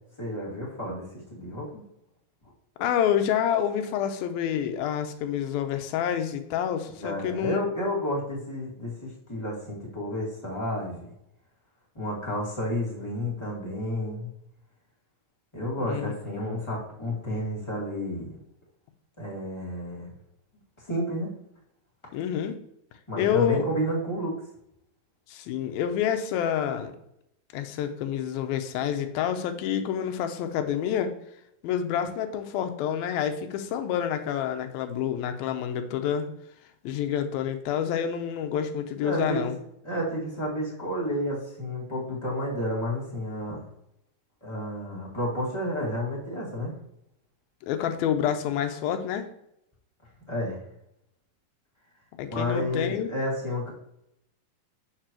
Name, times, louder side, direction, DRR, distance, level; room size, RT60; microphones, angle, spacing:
voice 1, 0.2-1.8 7.0-11.1 11.9-14.3 15.5-18.4 19.2-20.1 20.8-21.3 23.1-24.4 39.0-39.4 39.8-43.6 44.4-46.7 50.3-50.6 52.3-53.7, equal, 10° left, -5 dB, 1.3 m, -31 dB
voice 2, 2.8-7.6 15.8-16.1 22.1-22.6 23.2-23.7 25.3-26.9 27.5-31.1 31.6-36.3 36.8-39.6 47.7-49.3 52.2-53.1, left 9 dB, 90° left, 7 dB, 2.6 m, -28 dB
6.8 x 6.7 x 2.9 m, 0.79 s
omnidirectional pair, 4.2 m